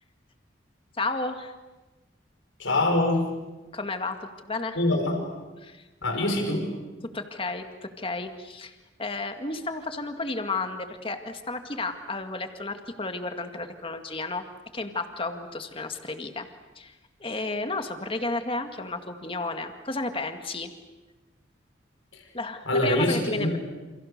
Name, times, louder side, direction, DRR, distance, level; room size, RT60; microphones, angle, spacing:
voice 1, 1.0-1.5 3.7-4.2 4.4-4.8 5.6-5.8 6.2-6.3 7.1-14.4 14.7-16.5 16.8-16.9 17.2-20.7 22.3-23.6, left 3 dB, 30° left, 6 dB, 2.0 m, -32 dB
voice 2, 2.6-3.3 4.8-5.2 6.0-6.7 22.1-22.3 22.7-23.6, left 1 dB, 85° left, 4 dB, 5.5 m, -24 dB
29.0 x 29.0 x 6.7 m, 1.2 s
head